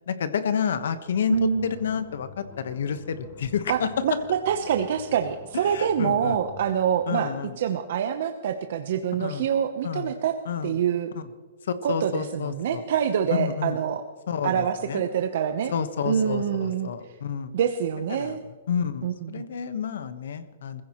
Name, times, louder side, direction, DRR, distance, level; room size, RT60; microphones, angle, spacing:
voice 1, 0.1-3.9 5.5-6.4 7.1-7.6 9.2-9.5 9.8-10.1 10.4-10.8 11.1-11.3 11.6-12.8 13.3-13.8 14.3-15.0 15.7-17.5 18.1-18.4 18.7-20.8, left 7 dB, 75° left, 11 dB, 1.3 m, -30 dB
sound 1, 1.3-6.9, left 4 dB, 30° left, 2.4 m, -47 dB
voice 2, 1.3-1.7 3.7-10.3 10.6-11.1 11.8-14.0 14.4-15.7 16.0-16.9 17.5-18.4 19.0-19.4, right 8 dB, 55° right, 6 dB, 0.9 m, -26 dB
22.0 x 15.5 x 3.1 m, 1.5 s
hypercardioid pair, 170°, 0 cm